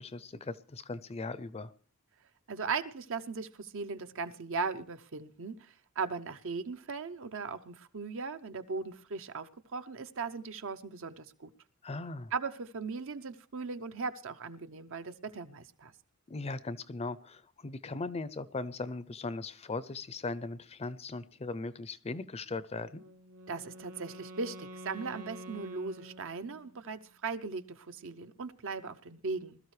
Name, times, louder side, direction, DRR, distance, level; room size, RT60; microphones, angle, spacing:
voice 1, 0.0-1.7 11.8-12.3 16.3-23.0, left 3 dB, 30° left, 0.5 m, -39 dB
voice 2, 2.5-11.5 12.3-15.9 23.5-29.6, right 4 dB, 60° right, 0.8 m, -38 dB
Wind instrument woodwind instrument, 22.9-26.8, equal, 90° right, 1.2 m, -48 dB
20.5 x 13.0 x 3.2 m
head